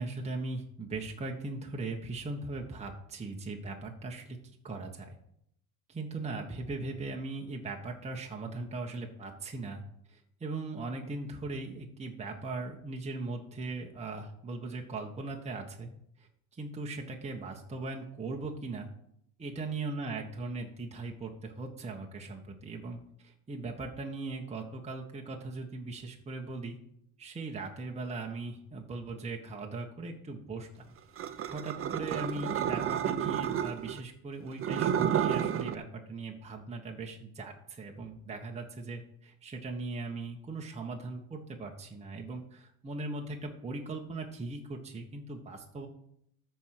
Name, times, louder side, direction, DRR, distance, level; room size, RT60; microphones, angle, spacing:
voice 1, 0.0-4.4 4.6-5.2 5.9-9.8 10.1-15.9 16.2-16.3 16.5-18.9 19.4-26.8 27.2-45.9, right 3 dB, 15° right, 0 dB, 1.3 m, -39 dB
sound 1, 31.2-34.0 34.5-35.8, right 9 dB, 35° right, 0.8 m, -31 dB
13.5 x 4.6 x 6.5 m, 0.73 s
supercardioid pair, 105°, 39 cm